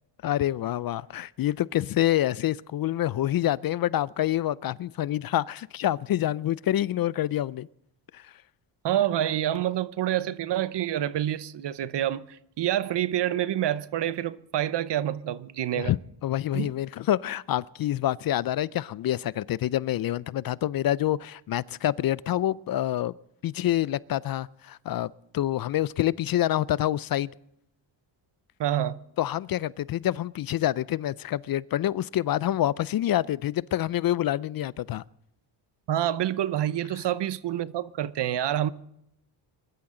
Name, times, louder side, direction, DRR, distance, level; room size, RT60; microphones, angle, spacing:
voice 1, 0.2-7.7 8.1-8.3 15.7-23.1 23.4-27.3 29.2-35.0, left 13 dB, 50° left, 0.4 m, -27 dB
voice 2, 8.8-15.9 16.5-16.7 28.6-29.0 35.9-38.7, right 11 dB, 60° right, 0.9 m, -27 dB
22.0 x 13.0 x 3.8 m
cardioid pair, 80°, 48 cm